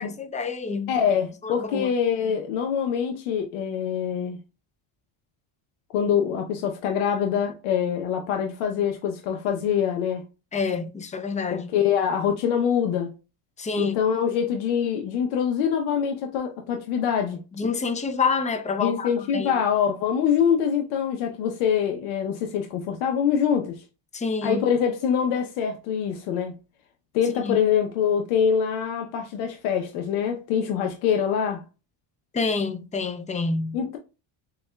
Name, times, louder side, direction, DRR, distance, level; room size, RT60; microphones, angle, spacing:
voice 1, 0.0-0.9 1.4-1.9 10.5-11.7 13.6-14.0 17.5-19.6 24.1-24.6 27.4-27.6 32.3-33.8, left 4 dB, 15° left, 0.4 m, -27 dB
voice 2, 0.9-4.4 5.9-10.2 11.5-13.1 13.8-17.4 18.8-23.8 24.4-26.5 27.1-31.6 33.7-34.0, left 8 dB, 90° left, 0.8 m, -24 dB
6.8 x 2.3 x 2.2 m
cardioid pair, 125°, 49 cm